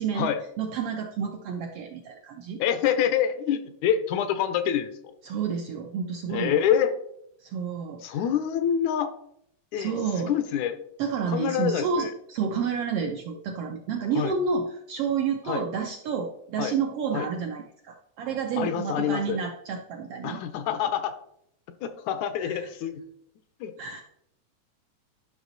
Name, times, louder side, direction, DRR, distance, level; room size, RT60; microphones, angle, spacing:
voice 1, 0.0-2.6 5.2-6.6 7.4-8.2 9.7-10.4 11.0-20.4 22.4-22.7 23.8-24.0, right 6 dB, 75° right, 3 dB, 1.4 m, -30 dB
voice 2, 2.6-4.9 6.3-6.9 8.0-9.1 9.7-9.9 10.3-10.8 11.3-12.1 14.2-14.3 15.5-15.6 16.6-16.7 17.1-17.3 18.6-19.4 20.2-21.2 21.8-23.0 23.6-23.7, left 9 dB, 80° left, 10 dB, 2.1 m, -26 dB
11.0 x 5.9 x 4.0 m, 0.73 s
omnidirectional pair, 3.5 m